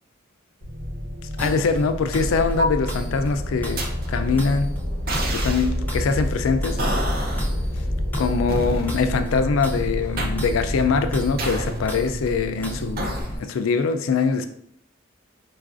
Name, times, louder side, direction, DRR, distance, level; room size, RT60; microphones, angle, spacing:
sound 1, 0.6-13.2, equal, 80° right, 1.2 m, -28 dB
voice 1, 1.4-3.8 4.1-4.7 5.3-6.8 8.1-14.5, left 5 dB, 90° left, 0.4 m, -23 dB
sound 2, 1.4-13.4, equal, 10° left, 0.4 m, -36 dB
sound 3, 1.4-1.5 2.6-2.9 3.8-4.1 5.1-5.7 6.8-7.5 8.5-9.0 10.2-10.5 11.4-11.9 13.0-13.3, right 1 dB, 50° right, 0.5 m, -27 dB
4.5 x 2.4 x 2.4 m
head